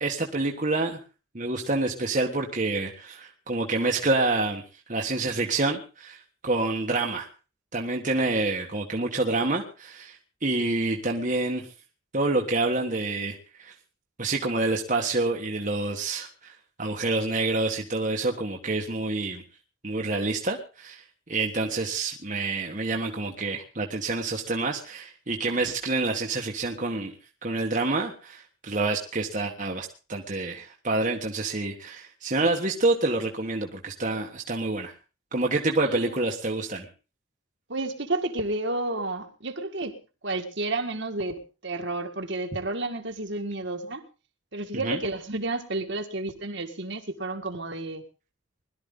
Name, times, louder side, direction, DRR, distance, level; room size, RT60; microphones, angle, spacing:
voice 1, 0.0-1.0 1.3-4.6 4.9-7.3 7.7-11.7 12.1-13.7 14.2-16.5 16.8-19.4 19.8-21.0 21.3-27.1 27.4-34.9 35.3-36.9 44.8-45.0, right 2 dB, 40° right, 1 dB, 1.5 m, -27 dB
voice 2, 37.7-40.0 40.2-44.0 44.5-48.0, right 2 dB, 55° right, 6 dB, 2.0 m, -31 dB
21.0 x 13.0 x 3.8 m, 0.33 s
head